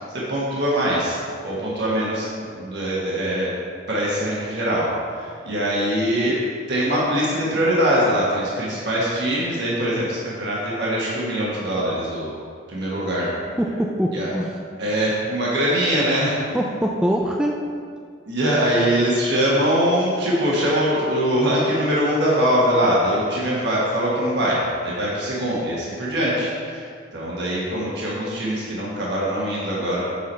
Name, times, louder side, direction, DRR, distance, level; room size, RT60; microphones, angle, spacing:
voice 1, 0.1-1.2 1.4-2.3 2.5-3.5 3.9-4.9 5.1-6.4 6.7-12.3 12.7-13.3 14.1-14.3 14.8-16.4 18.3-26.8 27.1-30.0, equal, 55° right, -6 dB, 1.4 m, -22 dB
voice 2, 13.6-14.6 16.5-17.6, equal, 5° right, 0 dB, 0.3 m, -23 dB
7.3 x 5.9 x 4.3 m, 2.1 s
head